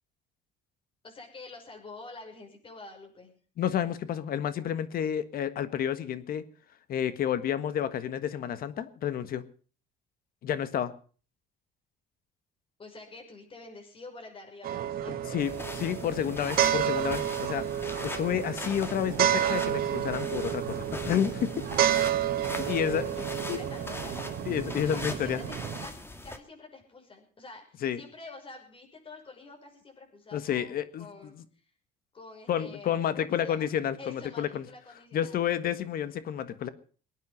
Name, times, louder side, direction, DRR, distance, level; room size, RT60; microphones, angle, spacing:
voice 1, 1.0-3.3 12.8-15.4 22.3-24.4 24.8-31.6 32.1-33.7 34.0-35.4, left 3 dB, 30° left, 2 dB, 5.9 m, -47 dB
voice 2, 3.6-6.4 6.9-9.4 10.4-10.9 15.1-15.5 15.8-21.6 22.7-23.0 23.5-23.6 24.5-25.4 27.8-28.0 30.3-31.1 31.4-31.5 32.5-34.6 35.1-36.7, left 9 dB, 60° left, 13 dB, 1.6 m, -30 dB
sound 1, 14.6-25.9, right 11 dB, 65° right, 1.5 m, -30 dB
sound 2, 15.4-26.4, left 1 dB, 15° left, 2.2 m, -41 dB
22.0 x 9.4 x 5.8 m, 0.41 s
cardioid pair, 110°, 17 cm